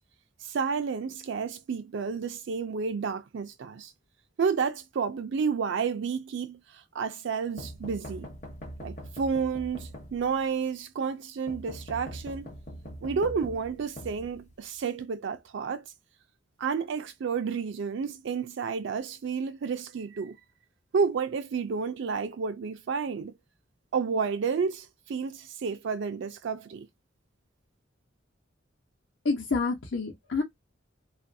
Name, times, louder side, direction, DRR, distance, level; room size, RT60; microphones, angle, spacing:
voice 1, 0.4-3.9 4.4-8.3 8.8-12.5 13.0-15.8 16.6-20.3 20.9-23.3 23.9-26.9, right 5 dB, 65° right, 0.4 m, -31 dB
sound 1, 7.6-10.5 11.5-14.8, equal, 40° left, 0.9 m, -42 dB
voice 2, 29.2-30.4, left 4 dB, 75° left, 0.9 m, -28 dB
2.9 x 2.5 x 2.6 m
head